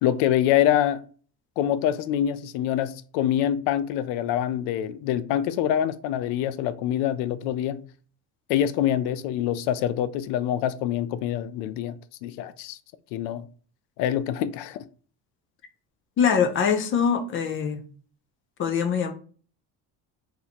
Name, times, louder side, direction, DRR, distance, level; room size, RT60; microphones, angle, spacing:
voice 1, 0.0-1.0 1.6-7.8 8.5-12.0 12.2-12.8 13.1-13.5 14.0-14.8, left 11 dB, 90° left, 0.5 m, -25 dB
voice 2, 16.2-17.8 18.6-19.1, left 7 dB, 30° left, 0.4 m, -23 dB
2.9 x 2.6 x 4.1 m
cardioid pair, 160°, 40 cm